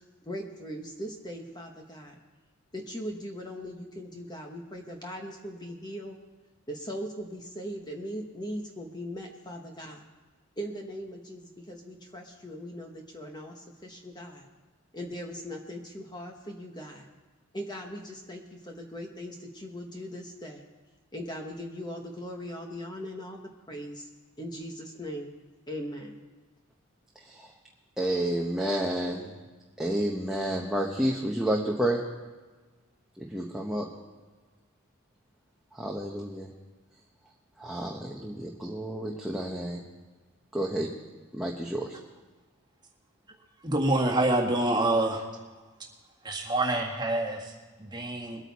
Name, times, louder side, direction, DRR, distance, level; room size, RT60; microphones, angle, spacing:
voice 1, 0.0-2.2 2.7-6.2 6.7-10.0 10.6-14.5 14.9-17.1 17.5-20.6 21.1-24.1 24.4-25.3 25.7-26.2, equal, 20° left, 2 dB, 1.2 m, -39 dB
voice 2, 28.0-29.3 29.8-32.0 33.2-33.9 35.7-36.5 37.6-39.8 40.5-40.9 41.3-42.0, right 1 dB, ahead, -2 dB, 0.9 m, -30 dB
voice 3, 43.6-45.5 46.2-48.5, right 2 dB, 20° right, -1 dB, 1.8 m, -27 dB
22.0 x 9.0 x 4.1 m, 1.3 s
head